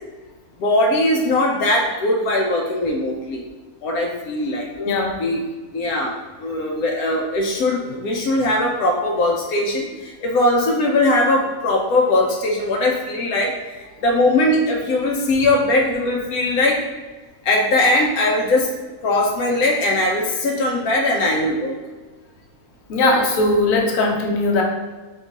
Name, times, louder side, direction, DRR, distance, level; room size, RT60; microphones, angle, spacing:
voice 1, 0.6-3.4 3.8-4.7 5.2-5.4 5.7-6.1 6.4-16.8 17.4-18.7 19.0-21.8, left 1 dB, 90° left, 0 dB, 1.1 m, -20 dB
voice 2, 4.8-5.2 22.9-24.6, left 2 dB, 70° left, 0 dB, 1.1 m, -19 dB
3.7 x 3.0 x 4.0 m, 1.3 s
omnidirectional pair, 1.5 m